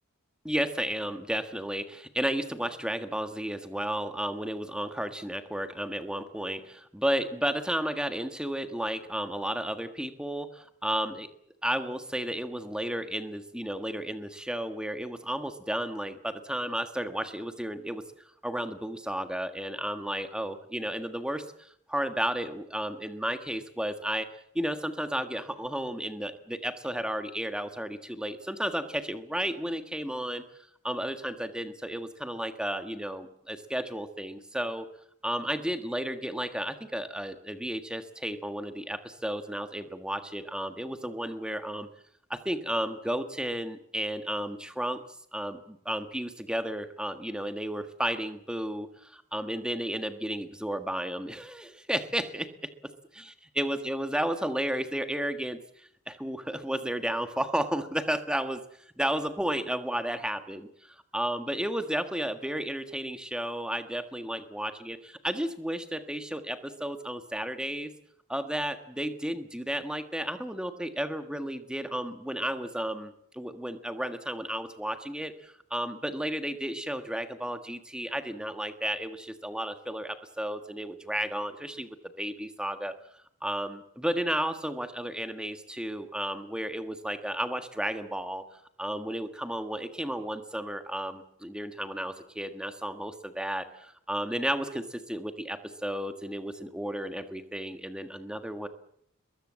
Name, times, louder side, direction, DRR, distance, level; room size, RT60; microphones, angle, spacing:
voice 1, 0.4-11.3 11.6-18.0 18.4-24.3 24.6-30.4 30.8-34.9 35.2-41.9 42.3-45.0 45.3-52.5 53.1-58.6 59.0-67.9 68.3-82.9 83.4-88.4 88.8-98.7, right 1 dB, 5° right, 8 dB, 1.6 m, -33 dB
23.0 x 22.0 x 7.6 m, 0.70 s
head